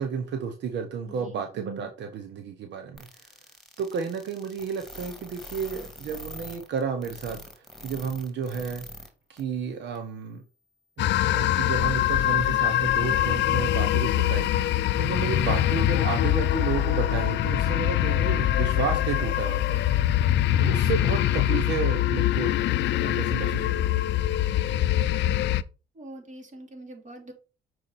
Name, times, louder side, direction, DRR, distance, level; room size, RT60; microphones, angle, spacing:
voice 1, 0.0-3.3 3.8-7.4 7.8-8.8 9.3-10.4 11.0-19.8 20.6-22.5 22.8-24.0 24.7-24.8, right 6 dB, 80° right, 6 dB, 1.0 m, -32 dB
voice 2, 1.1-1.4 25.9-27.3, right 1 dB, 45° right, 2 dB, 2.8 m, -44 dB
sound 1, 3.0-9.1 9.4-9.5 10.0-10.1, left 1 dB, ahead, 2.1 m, -43 dB
sound 2, 11.0-25.6, left 13 dB, 85° left, 0.5 m, -24 dB
6.4 x 4.7 x 4.2 m, 0.32 s
cardioid pair, 80°, 18 cm